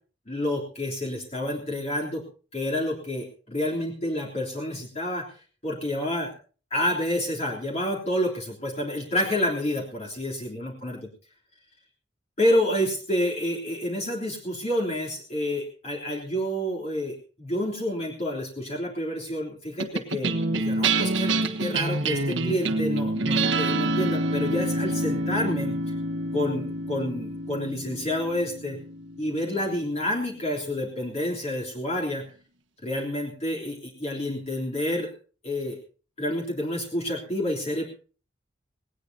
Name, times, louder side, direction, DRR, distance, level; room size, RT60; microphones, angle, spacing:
voice 1, 0.3-2.2 2.5-5.3 5.6-6.3 6.7-11.1 12.4-25.9 26.3-28.8 29.2-32.2 32.8-35.1 35.4-35.8 36.2-37.8, left 1 dB, 35° left, -2 dB, 3.4 m, -29 dB
sound 1, 19.8-30.4, right 2 dB, 75° right, 1.4 m, -27 dB
19.0 x 18.5 x 2.8 m, 0.39 s
head